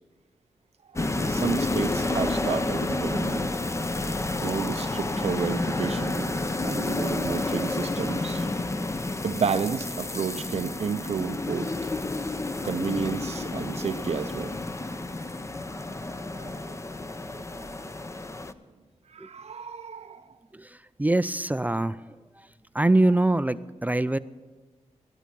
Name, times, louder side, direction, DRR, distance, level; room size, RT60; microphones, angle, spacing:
sound 1, 0.9-18.5, left 2 dB, 25° left, 0.7 m, -30 dB
voice 1, 0.9-3.5 4.2-8.5 9.2-11.9 12.6-14.5 15.9-16.7 17.4-17.5 19.1-20.3, right 6 dB, 60° right, 9 dB, 0.6 m, -31 dB
voice 2, 20.5-22.0 22.7-24.2, right 2 dB, 15° right, 14 dB, 0.4 m, -23 dB
20.0 x 11.0 x 6.1 m, 1.3 s
wide cardioid pair, 100°, 12 cm